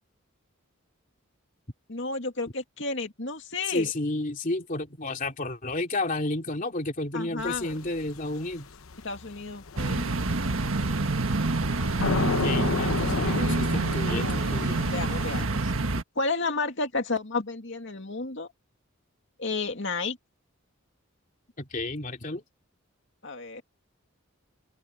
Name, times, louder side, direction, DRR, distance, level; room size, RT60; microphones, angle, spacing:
voice 1, 1.9-3.9 7.1-7.7 9.0-10.1 14.1-14.4 14.9-15.7 16.2-18.5 19.4-20.2 23.2-23.6, left 3 dB, 60° left, 2.6 m, -32 dB
voice 2, 3.7-8.7 12.4-14.8 21.6-22.4, left 2 dB, 40° left, 2.9 m, -31 dB
sound 1, 7.4-15.4, left 4 dB, 85° left, 0.9 m, -33 dB
sound 2, 9.8-16.0, right 3 dB, 75° right, 1.5 m, -27 dB
open air
head